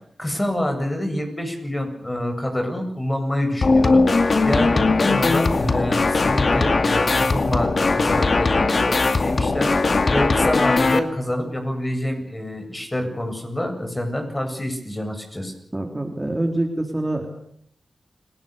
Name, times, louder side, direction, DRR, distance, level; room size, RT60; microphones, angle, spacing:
voice 1, 0.2-9.7 10.1-15.5, left 1 dB, 20° left, 4 dB, 8.0 m, -27 dB
sound 1, 3.6-11.0, left 3 dB, 55° left, 2.1 m, -19 dB
voice 2, 15.7-17.3, right 1 dB, 20° right, 3 dB, 3.6 m, -25 dB
29.0 x 18.5 x 6.9 m, 0.66 s
cardioid pair, 60°, 0 cm